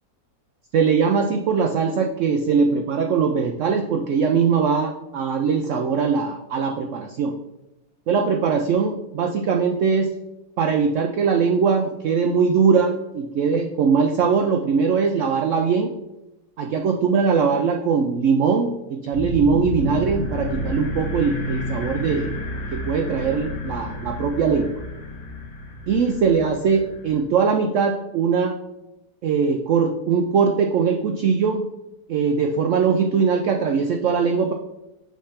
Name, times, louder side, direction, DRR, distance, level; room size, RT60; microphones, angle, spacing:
voice 1, 0.7-7.4 8.1-10.1 10.6-15.9 16.6-22.3 22.7-24.7 25.9-28.5 29.2-31.6 32.1-34.5, right 5 dB, 85° right, 4 dB, 0.6 m, -21 dB
sound 1, 19.1-27.2, left 1 dB, 45° left, 1.2 m, -30 dB
6.4 x 3.3 x 5.7 m, 0.94 s
omnidirectional pair, 1.9 m